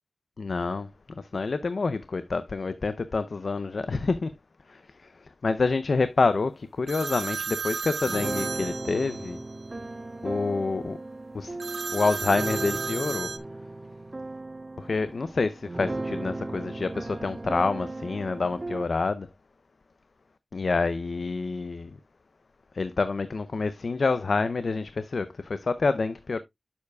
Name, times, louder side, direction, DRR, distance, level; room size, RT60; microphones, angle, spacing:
voice 1, 0.4-4.3 4.7-9.4 10.2-11.0 11.3-11.6 11.9-13.3 14.8-19.3 20.5-22.0 22.7-26.4, left 4 dB, 65° left, 0.5 m, -27 dB
sound 1, 6.9-9.4 11.6-13.4, right 5 dB, 75° right, 0.7 m, -33 dB
sound 2, 8.0-18.9, right 2 dB, 35° right, 0.4 m, -36 dB
9.5 x 7.1 x 2.2 m
wide cardioid pair, 100°, 0 cm